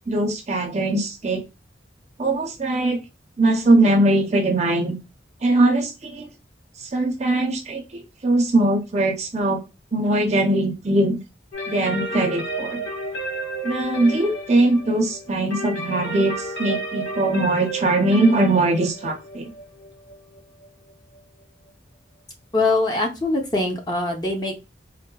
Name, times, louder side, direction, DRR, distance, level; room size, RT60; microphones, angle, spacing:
voice 1, 0.1-1.4 2.2-3.0 3.4-5.0 5.4-6.3 6.8-9.6 9.9-11.2 11.7-12.8 13.6-19.5, right 2 dB, 35° right, 3 dB, 0.5 m, -21 dB
sound 1, 11.5-21.2, right 1 dB, 85° left, 0.8 m, -32 dB
voice 2, 22.5-24.7, left 2 dB, 20° left, 1 dB, 0.6 m, -23 dB
3.7 x 2.1 x 2.2 m, 0.26 s
head